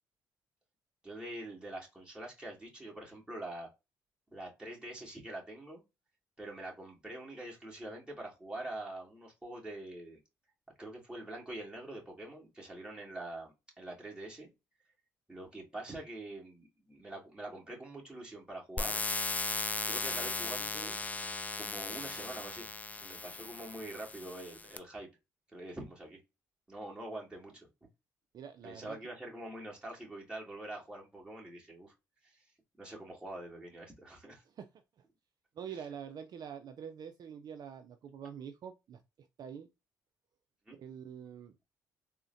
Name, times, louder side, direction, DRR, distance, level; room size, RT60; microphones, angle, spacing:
voice 1, 1.0-3.7 4.3-5.8 6.4-10.2 10.8-14.5 15.3-19.0 19.7-22.7 23.0-25.1 25.5-26.2 26.7-27.7 28.6-31.9 32.2-32.4 32.8-34.4 40.7-40.8, right 1 dB, 10° right, 1.8 m, -45 dB
sound 1, 18.8-24.8, left 3 dB, 20° left, 0.4 m, -37 dB
voice 2, 28.3-29.0 34.6-34.7 35.6-39.7 40.8-41.6, right 8 dB, 55° right, 0.4 m, -46 dB
3.7 x 2.1 x 2.5 m
supercardioid pair, 60°, 8 cm